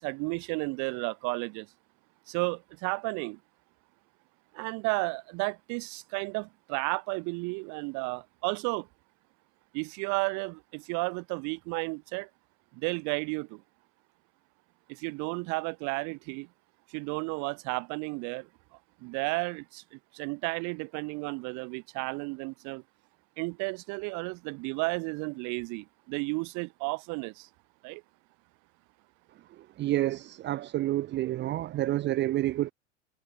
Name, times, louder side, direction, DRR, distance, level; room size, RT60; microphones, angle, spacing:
voice 1, 0.0-1.7 2.3-3.4 4.5-8.9 9.7-12.3 12.8-13.6 14.9-16.5 16.9-18.5 19.0-22.8 23.4-27.5 27.8-28.0, right 30 dB, 50° right, 2.9 m, -33 dB
voice 2, 29.8-32.7, right 15 dB, 30° right, 0.8 m, -29 dB
hypercardioid pair, 95°, 37 cm